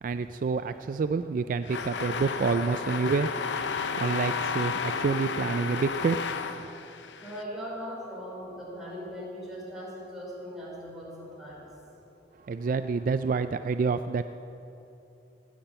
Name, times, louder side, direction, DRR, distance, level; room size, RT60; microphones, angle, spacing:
voice 1, 0.0-3.3 4.0-6.2 12.4-14.3, right 4 dB, 50° right, 11 dB, 0.3 m, -28 dB
sound 1, 1.7-7.4, left 5 dB, 85° left, 0.7 m, -32 dB
voice 2, 7.2-11.7, equal, 5° right, -5 dB, 4.3 m, -39 dB
15.5 x 8.8 x 8.0 m, 3.0 s
head